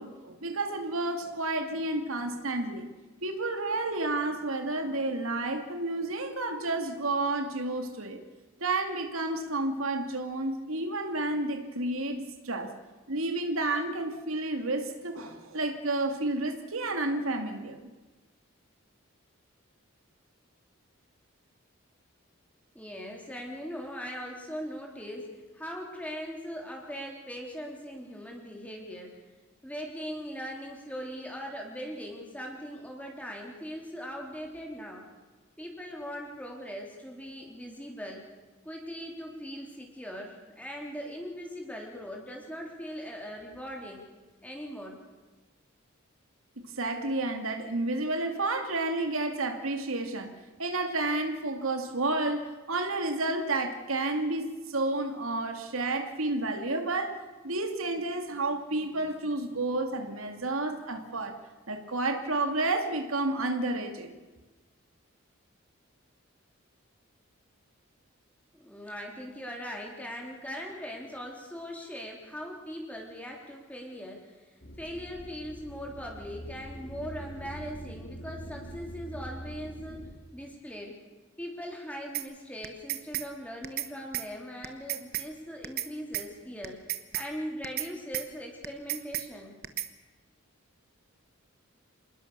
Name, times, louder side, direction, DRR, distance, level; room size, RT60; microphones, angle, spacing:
voice 1, 0.0-2.9 3.2-8.2 8.6-12.7 13.1-17.9 46.6-50.3 50.6-57.2 57.4-61.4 61.7-64.1, right 2 dB, 80° right, 5 dB, 2.4 m, -31 dB
voice 2, 22.8-29.2 29.6-35.0 35.6-38.3 38.6-44.1 44.4-45.0 68.5-74.5 74.8-80.0 80.3-80.9 81.4-86.8 87.1-89.6, equal, 5° left, 0 dB, 3.4 m, -40 dB
sound 1, 74.6-80.2, equal, 50° left, 2.4 m, -43 dB
sound 2, 82.1-82.3 82.6-83.3 83.6-83.9 84.1-84.3 84.6-85.3 85.6-85.9 86.1-86.3 86.6-87.3 87.6-87.9 88.1-88.3 88.6-89.3 89.6-89.9, right 13 dB, 45° right, 1.3 m, -33 dB
27.0 x 20.5 x 6.9 m, 1.2 s
head